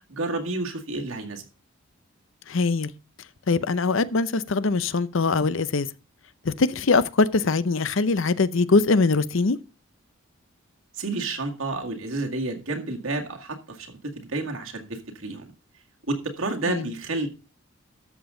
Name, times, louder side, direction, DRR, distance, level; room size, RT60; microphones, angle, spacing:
voice 1, 0.1-1.4 10.9-15.5 16.1-17.3, right 2 dB, 75° right, 2.1 m, -30 dB
voice 2, 2.5-2.9 3.5-5.9 6.4-9.6 16.7-16.9, left 3 dB, 65° left, 0.6 m, -22 dB
13.0 x 7.1 x 3.8 m
head